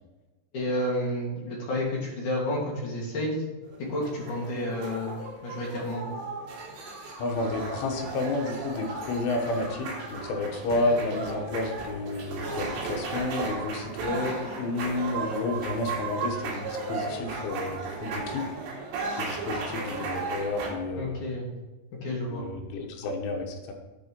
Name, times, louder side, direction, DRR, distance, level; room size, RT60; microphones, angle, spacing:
voice 1, 0.5-3.4 3.9-5.1 5.4-6.1 21.0-21.5 22.0-22.4, left 1 dB, 50° left, -3 dB, 2.9 m, -30 dB
sound 1, 3.7-20.7, right 3 dB, 75° right, 4.0 m, -35 dB
voice 2, 7.2-18.5 19.2-21.2 22.3-23.7, left 2 dB, 80° left, 2 dB, 3.6 m, -31 dB
9.1 x 5.3 x 5.4 m, 1.1 s
omnidirectional pair, 5.4 m